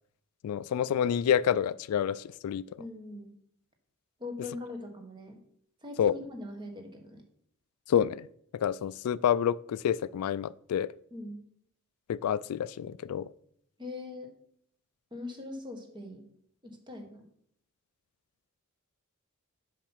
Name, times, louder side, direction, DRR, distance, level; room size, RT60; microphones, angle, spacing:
voice 1, 0.4-2.6 6.0-6.1 7.9-8.3 8.5-10.9 12.1-13.3, left 9 dB, 85° left, 17 dB, 0.3 m, -28 dB
voice 2, 2.8-3.3 4.2-5.4 5.8-7.2 11.1-11.4 13.8-14.3 15.1-16.3 16.6-17.3, left 2 dB, 20° right, 4 dB, 1.3 m, -41 dB
7.4 x 5.8 x 5.6 m, 0.67 s
head